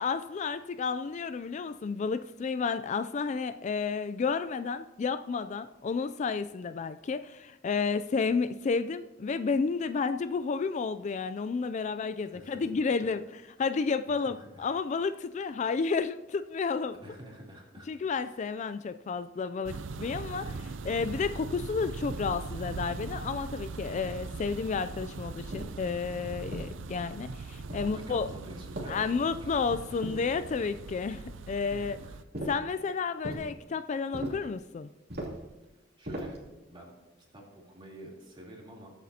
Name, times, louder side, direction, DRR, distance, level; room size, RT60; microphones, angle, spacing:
voice 1, 0.0-13.2 13.6-16.9 17.9-28.3 28.9-32.0 32.5-34.9, left 5 dB, 40° left, 12 dB, 0.3 m, -31 dB
voice 2, 12.1-12.6 14.1-14.7 17.0-17.9 18.2-18.4 27.8-29.1 29.4-29.5 31.6-32.1 36.0-36.4 36.7-36.9 37.3-38.9, right 1 dB, 25° right, -3 dB, 3.2 m, -48 dB
sound 1, 19.6-32.2, right 4 dB, 85° right, 0.5 m, -40 dB
sound 2, 25.5-25.9 26.5-27.2 27.7-28.2 28.7-29.4 30.0-30.7 32.3-32.7 33.2-33.5 34.1-34.5 35.1-35.5 36.0-36.5, equal, 55° right, 2.7 m, -39 dB
21.5 x 8.3 x 2.8 m, 1.0 s
head